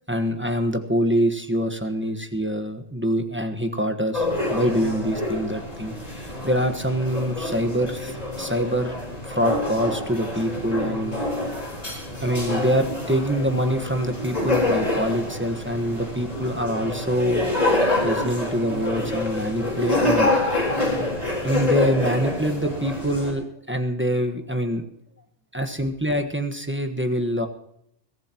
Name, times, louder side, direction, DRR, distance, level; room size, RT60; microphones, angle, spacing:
voice 1, 0.1-5.9 6.2-8.9 9.2-11.2 12.2-17.5 18.0-20.3 21.0-21.1 21.4-24.8 25.5-27.5, equal, 10° right, 6 dB, 1.2 m, -25 dB
sound 1, 4.1-23.3, left 2 dB, 30° left, 4.2 m, -27 dB
22.5 x 14.0 x 3.0 m, 0.73 s
omnidirectional pair, 1.3 m